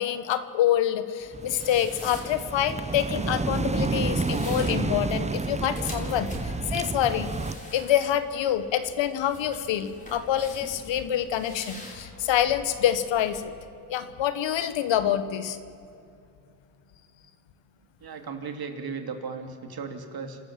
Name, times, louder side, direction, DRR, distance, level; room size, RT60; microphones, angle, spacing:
voice 1, 0.0-7.3 7.7-13.5 13.9-15.6, left 10 dB, 70° left, 11 dB, 1.5 m, -26 dB
sound 1, 1.2-13.4, left 1 dB, 15° left, 5.0 m, -44 dB
sound 2, 1.3-7.5, right 3 dB, 15° right, 0.7 m, -30 dB
voice 2, 18.0-20.4, right 5 dB, 50° right, 6 dB, 2.9 m, -36 dB
29.0 x 13.5 x 7.7 m, 2.6 s
cardioid pair, 80°, 46 cm